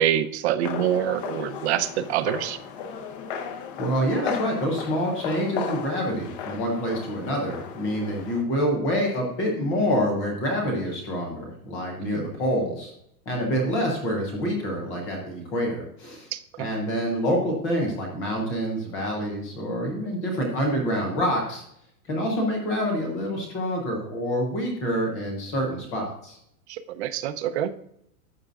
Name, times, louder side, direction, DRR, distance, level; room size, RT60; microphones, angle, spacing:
voice 1, 0.0-2.6 12.0-12.3 16.3-16.7 26.7-27.7, right 10 dB, 45° right, 11 dB, 0.7 m, -26 dB
sound 1, 0.6-8.4, left 7 dB, 35° left, 0.9 m, -35 dB
voice 2, 3.8-12.9 13.3-16.3 16.6-21.6 22.1-26.4, equal, 10° left, 0 dB, 0.4 m, -27 dB
12.0 x 7.7 x 2.4 m, 0.73 s
supercardioid pair, 165°, 46 cm